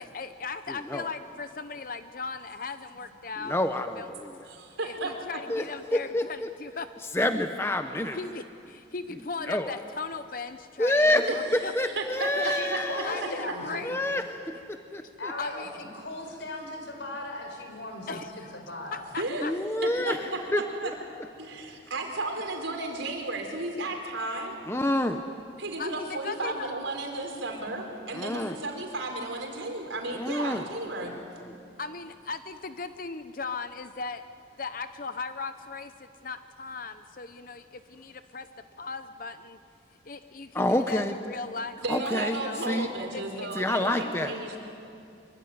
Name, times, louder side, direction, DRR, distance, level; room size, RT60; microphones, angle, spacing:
voice 1, 0.0-3.6 4.0-4.1 4.8-6.9 8.1-11.7 12.4-12.5 13.0-14.2 15.4-15.8 18.1-18.6 18.9-19.5 25.8-26.7 27.1-27.2 31.8-34.2 34.6-38.5 38.7-39.6 40.0-42.7 43.1-43.5, left 4 dB, 45° left, 10 dB, 0.7 m, -38 dB
voice 2, 0.7-1.1 3.4-4.4 5.5-6.5 7.1-8.2 9.5-9.8 10.8-13.5 13.8-15.3 19.4-20.9 24.7-25.2 28.1-28.6 30.1-30.7 31.0-31.5 40.5-41.1 41.9-42.9 43.5-44.4, left 1 dB, 15° left, 7 dB, 0.8 m, -28 dB
voice 3, 4.5-5.2 11.0-11.2 11.6-13.5 19.2-19.4 19.8-20.9 21.4-24.6 25.6-31.2 31.5-31.6 41.8-44.6, right 2 dB, 85° right, 3 dB, 4.6 m, -34 dB
voice 4, 12.4-13.9 15.2-19.0, left 1 dB, 75° left, 3 dB, 5.4 m, -38 dB
25.5 x 23.5 x 9.5 m, 2.6 s
head